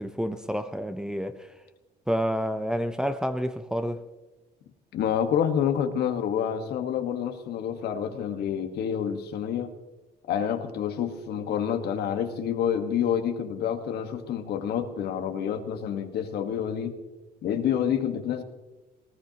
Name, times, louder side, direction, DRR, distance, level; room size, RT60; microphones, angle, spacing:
voice 1, 0.0-1.5 2.1-4.1, equal, 5° right, 0.7 m, -29 dB
voice 2, 4.9-9.7 10.3-17.0 17.4-18.4, left 8 dB, 70° left, 1.5 m, -28 dB
19.0 x 18.5 x 3.0 m
cardioid pair, 110°, 17 cm